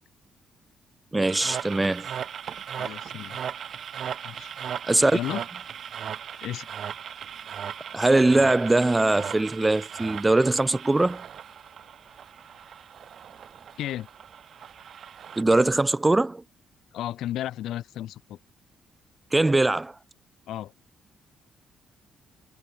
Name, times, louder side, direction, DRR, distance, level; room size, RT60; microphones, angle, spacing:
voice 1, 1.1-2.1 4.9-5.2 7.9-11.2 15.4-16.4 19.3-19.9, right 2 dB, 15° right, 1.5 m, -21 dB
sound 1, 1.2-15.4, right 8 dB, 60° right, 7.1 m, -38 dB
voice 2, 2.8-3.4 4.2-4.5 5.1-5.4 6.4-6.7 13.8-14.1 16.9-18.4 20.5-20.7, left 12 dB, 80° left, 3.5 m, -33 dB
cardioid pair, 90°, 0 cm